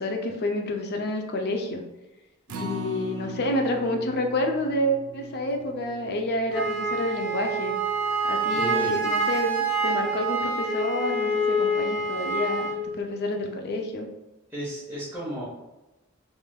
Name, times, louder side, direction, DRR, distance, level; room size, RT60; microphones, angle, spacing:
voice 1, 0.0-1.8 2.6-7.7 8.2-14.1, left 1 dB, 50° left, 3 dB, 0.4 m, -29 dB
Acoustic guitar, 2.5-8.8 9.2-9.3 9.7-9.8, right 1 dB, 90° right, 0.4 m, -41 dB
Wind instrument woodwind instrument, 6.5-12.8, right 2 dB, 35° left, 1.1 m, -26 dB
voice 2, 8.5-8.9 14.5-15.4, equal, 10° right, -9 dB, 0.8 m, -34 dB
3.3 x 2.5 x 2.2 m, 1.0 s
head